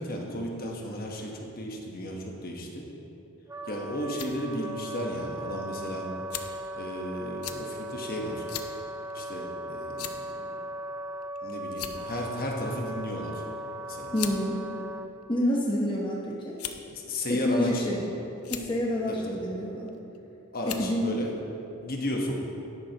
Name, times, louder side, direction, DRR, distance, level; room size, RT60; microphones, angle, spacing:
voice 1, 0.0-2.9 3.7-6.1 6.8-8.4 9.1-10.5 11.4-13.4 13.8-14.1 16.9-17.8 19.1-19.4 20.5-21.3 21.8-22.4, left 1 dB, 45° left, 0 dB, 1.2 m, -34 dB
Wind instrument woodwind instrument, 3.5-15.1, right 1 dB, 15° right, 0.4 m, -38 dB
sound 1, 4.0-4.3 5.1-5.2 6.3-6.7 7.4-7.6 8.5-8.7 9.1-9.2 10.0-10.3 11.2-11.4 11.7-12.2 13.3-13.5 14.1-14.4 15.2-15.8 16.6-16.9 17.7-18.1 18.4-18.7 19.9-20.2 20.6-20.9, left 10 dB, 85° left, 0.6 m, -38 dB
voice 2, 14.1-14.6 15.3-16.6 17.3-18.1 18.5-20.0 20.6-21.1, left 1 dB, 20° left, -4 dB, 0.8 m, -28 dB
11.0 x 11.0 x 2.9 m, 2.9 s
head